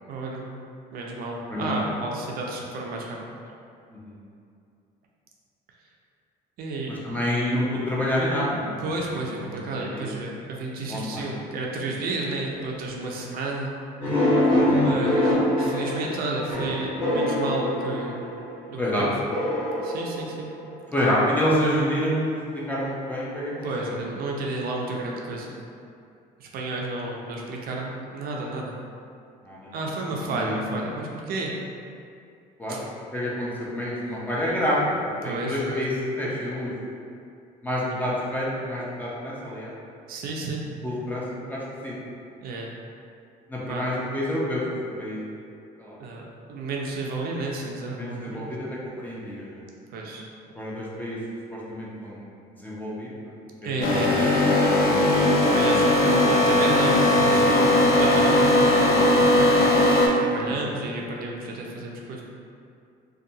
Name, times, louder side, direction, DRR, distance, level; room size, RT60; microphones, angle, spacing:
voice 1, 0.1-0.4 0.9-3.2 6.6-6.9 8.8-13.7 14.8-18.2 18.7-19.1 19.8-20.5 23.6-25.5 26.4-28.7 29.7-31.5 32.7-32.8 35.2-35.8 40.1-40.6 42.4-42.7 43.7-43.9 46.0-46.2 46.5-48.5 49.9-50.2 53.6-54.3 55.3-59.8 60.2-62.2, right 2 dB, 60° right, -1 dB, 0.4 m, -31 dB
voice 2, 6.9-8.6 9.5-10.1 10.9-11.3 14.0-15.2 18.8-19.1 20.9-23.9 29.4-29.8 30.2-30.7 32.6-32.8 33.1-36.7 37.6-39.7 40.8-41.9 43.5-45.2 45.8-46.0 48.0-49.6 50.5-51.2 51.5-52.3 52.6-53.3 53.6-53.8 57.2-57.5 60.5-60.6, left 1 dB, 10° left, -7 dB, 0.6 m, -28 dB
sound 1, 14.0-18.6 19.3-20.9, left 1 dB, 30° left, 1.3 m, -24 dB
sound 2, 53.8-60.1, left 1 dB, 65° left, 0.5 m, -19 dB
2.6 x 2.2 x 2.7 m, 2.5 s
cardioid pair, 110°, 17 cm